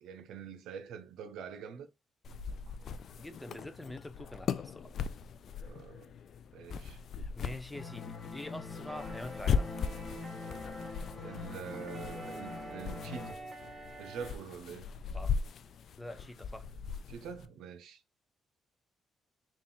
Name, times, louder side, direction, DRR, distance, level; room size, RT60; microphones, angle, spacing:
voice 1, 0.0-1.9 2.7-2.8 5.6-6.1 6.5-7.0 11.2-13.4 14.0-14.9 17.1-18.0, right 6 dB, 85° right, 0.6 m, -45 dB
sound 1, 2.2-17.5, left 6 dB, 60° left, 0.3 m, -39 dB
voice 2, 3.2-4.9 7.1-9.7 15.1-15.4 16.0-16.7, left 1 dB, 10° left, 0.5 m, -45 dB
sound 2, 7.8-13.3, left 4 dB, 45° left, 0.8 m, -44 dB
sound 3, 8.9-14.3, right 2 dB, 20° right, 1.0 m, -47 dB
3.6 x 2.4 x 3.8 m
cardioid pair, 90°, 0 cm